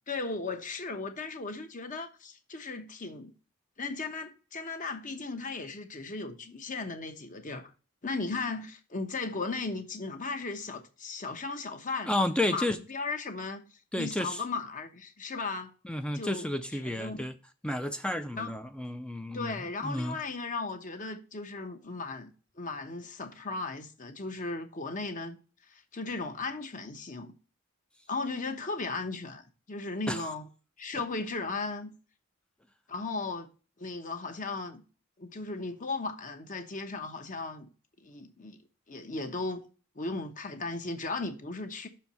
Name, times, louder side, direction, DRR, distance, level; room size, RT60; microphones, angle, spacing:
voice 1, 0.1-3.3 3.8-7.7 8.0-12.1 12.5-13.6 14.0-15.7 16.1-16.5 16.7-17.2 18.4-18.5 19.3-22.3 22.6-25.4 25.7-27.3 28.1-30.5 30.8-32.0 32.9-33.5 33.8-34.8 35.2-37.7 38.0-38.6 38.9-39.6 40.0-41.9, left 3 dB, 40° left, 1.0 m, -36 dB
voice 2, 12.1-12.8 13.9-14.4 15.8-17.3 17.6-20.2 30.1-30.2 31.0-31.1, left 1 dB, 5° left, 0.4 m, -31 dB
6.3 x 4.5 x 5.5 m
head